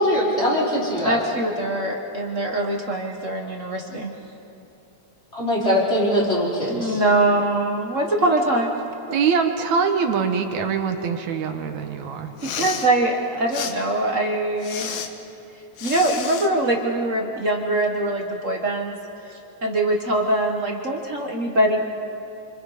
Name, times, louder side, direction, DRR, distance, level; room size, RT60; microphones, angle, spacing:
voice 1, 0.0-1.2 5.3-7.0, equal, 20° left, -6 dB, 5.0 m, -21 dB
voice 2, 1.0-4.1 6.7-8.7 12.5-15.0 15.8-19.0 19.6-21.8, right 1 dB, 35° right, 0 dB, 1.3 m, -23 dB
voice 3, 9.1-12.3, right 6 dB, 75° right, 5 dB, 2.5 m, -23 dB
Respiratory sounds, 12.3-12.9 13.5-13.7 14.6-15.1 15.8-16.5, left 7 dB, 75° left, 2.4 m, -31 dB
28.0 x 26.5 x 5.1 m, 2.8 s
omnidirectional pair, 3.3 m